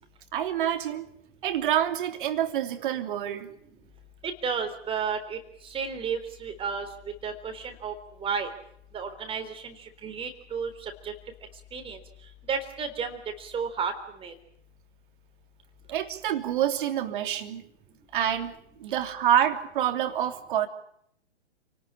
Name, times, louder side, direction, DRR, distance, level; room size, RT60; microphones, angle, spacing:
voice 1, 0.3-1.1 1.4-3.5 15.9-17.6 18.1-18.5 18.8-20.7, right 10 dB, 50° right, 7 dB, 3.0 m, -27 dB
voice 2, 4.2-5.4 5.6-6.9 7.2-7.9 8.2-8.5 8.9-9.7 10.0-11.1 11.7-12.0 12.5-13.9 14.2-14.3, right 6 dB, 15° right, 6 dB, 3.8 m, -32 dB
29.0 x 19.0 x 8.8 m, 0.71 s
figure-of-eight pair, 115°, 34 cm